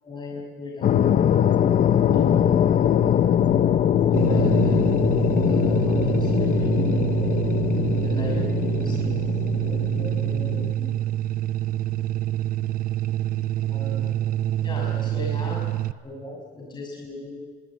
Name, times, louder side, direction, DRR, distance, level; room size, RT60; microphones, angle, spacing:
voice 1, 0.0-1.7 2.1-2.6 4.1-5.0 5.4-7.4 8.0-9.1 9.6-10.9 13.6-14.0 14.6-15.6 16.0-17.4, left 2 dB, 25° left, -2 dB, 6.3 m, -37 dB
sound 1, 0.8-10.7, left 9 dB, 50° left, 0.9 m, -22 dB
sound 2, 4.1-15.9, right 13 dB, 55° right, 0.7 m, -26 dB
25.0 x 21.5 x 8.6 m, 1.5 s
cardioid pair, 110°, 17 cm